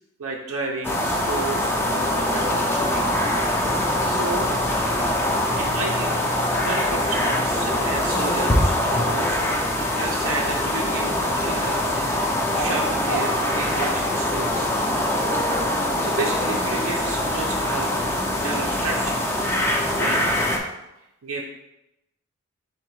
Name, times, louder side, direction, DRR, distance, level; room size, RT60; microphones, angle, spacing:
voice 1, 0.2-3.1 4.1-4.6 5.5-9.4 9.9-12.2 12.5-14.7 15.3-15.4 16.0-17.9 18.4-20.3 21.2-21.4, right 3 dB, 80° right, -1 dB, 0.5 m, -32 dB
sound 1, 0.8-20.6, left 1 dB, 10° left, 0.5 m, -23 dB
4.0 x 2.8 x 4.6 m, 0.90 s
head